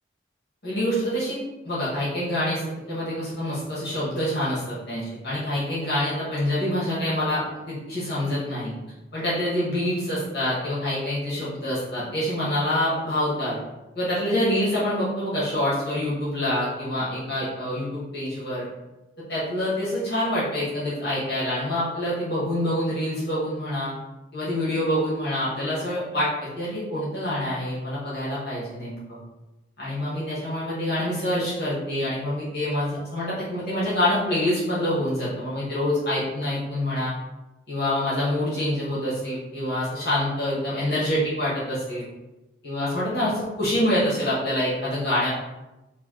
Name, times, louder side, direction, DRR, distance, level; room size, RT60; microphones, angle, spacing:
voice 1, 0.6-1.4 1.6-8.7 9.1-13.6 13.9-18.7 19.3-23.9 24.3-26.3 26.6-29.2 29.8-37.1 37.7-42.0 42.6-45.3, left 1 dB, 55° left, -9 dB, 1.5 m, -26 dB
3.4 x 2.7 x 3.7 m, 1.0 s
head